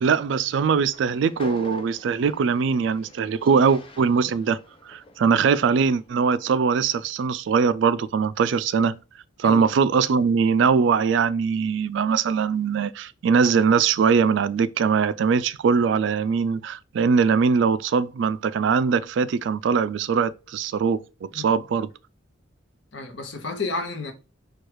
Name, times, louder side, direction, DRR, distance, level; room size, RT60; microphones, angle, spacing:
voice 1, 0.0-4.6 4.9-9.0 9.4-21.0 21.3-21.9, right 5 dB, 65° right, 0.3 m, -21 dB
Train, 0.8-6.0, left 3 dB, 25° left, 0.4 m, -46 dB
voice 2, 21.3-21.6 22.9-24.1, left 3 dB, 65° left, 0.9 m, -31 dB
4.6 x 2.3 x 4.6 m
head